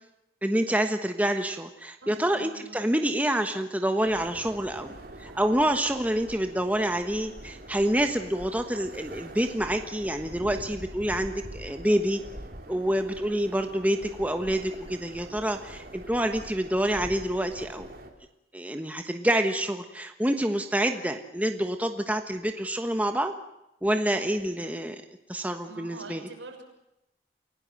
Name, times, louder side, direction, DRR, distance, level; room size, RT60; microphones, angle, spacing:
voice 1, 0.4-4.9 5.2-12.2 12.7-17.9 18.5-23.3 23.8-25.0 25.3-26.2, right 1 dB, 10° right, 6 dB, 1.3 m, -27 dB
voice 2, 2.0-2.8 3.1-3.2 25.6-26.6, right 2 dB, 80° right, 3 dB, 6.5 m, -45 dB
sound 1, 4.0-18.1, right 1 dB, 50° right, 3.4 m, -44 dB
29.0 x 17.5 x 7.8 m, 0.88 s
head